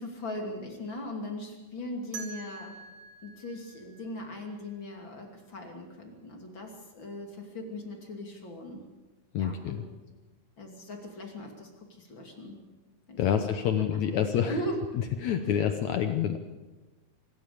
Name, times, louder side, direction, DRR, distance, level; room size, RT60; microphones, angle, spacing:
voice 1, 0.0-2.8 3.2-8.8 9.4-9.8 10.6-12.6 13.1-13.2 13.8-14.8, left 1 dB, 35° left, 2 dB, 3.0 m, -39 dB
sound 1, 2.1-5.0, right 4 dB, 55° right, 3.9 m, -46 dB
voice 2, 9.3-9.8 13.2-14.6 15.2-16.4, left 8 dB, 70° left, 7 dB, 1.8 m, -27 dB
25.0 x 13.5 x 8.6 m, 1.2 s
omnidirectional pair, 4.3 m